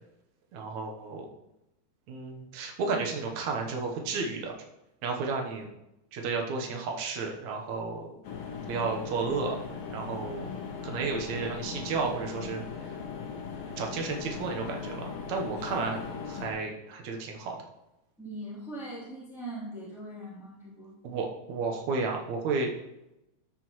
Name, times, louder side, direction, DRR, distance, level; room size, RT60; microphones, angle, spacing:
voice 1, 0.5-1.3 2.1-4.5 5.0-5.7 6.1-8.1 8.7-9.6 9.9-10.5 10.8-12.6 13.8-16.0 16.3-17.6 21.0-22.7, right 4 dB, 75° right, 1 dB, 2.4 m, -32 dB
sound 1, 8.2-16.5, left 5 dB, 70° left, 2.5 m, -38 dB
voice 2, 18.2-20.9, right 1 dB, ahead, -11 dB, 3.0 m, -41 dB
14.0 x 6.1 x 3.1 m, 0.90 s
omnidirectional pair, 3.4 m